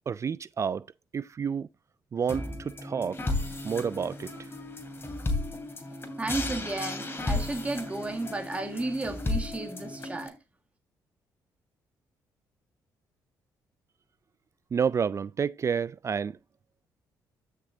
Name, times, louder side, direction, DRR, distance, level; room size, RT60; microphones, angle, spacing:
voice 1, 0.1-0.9 1.1-1.7 2.1-3.2 3.6-4.5 14.7-16.4, right 6 dB, 40° right, 0.4 m, -29 dB
sound 1, 2.3-10.3, left 2 dB, 30° left, 2.8 m, -34 dB
voice 2, 6.2-10.3, right 2 dB, 15° right, 1.7 m, -33 dB
13.5 x 6.0 x 2.7 m
supercardioid pair, 70°, 8 cm